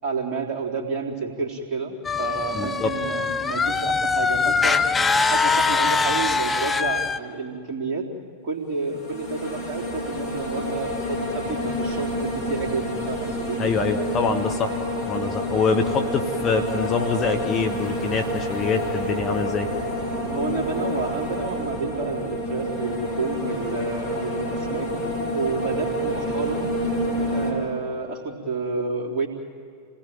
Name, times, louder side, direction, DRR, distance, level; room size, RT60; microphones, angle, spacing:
voice 1, 0.0-4.8 5.3-8.1 8.4-13.6 20.3-24.9 25.3-26.7 27.3-29.3, right 4 dB, 30° right, -2 dB, 3.9 m, -30 dB
sound 1, 2.0-7.2, left 4 dB, 15° left, 0.9 m, -22 dB
voice 2, 2.5-2.9 13.6-14.7 15.1-19.7, left 4 dB, 30° left, 5 dB, 1.9 m, -24 dB
sound 2, 8.8-27.5, equal, 50° left, 7.2 m, -28 dB
29.0 x 19.5 x 9.1 m, 2.2 s
figure-of-eight pair, 90°, 0 cm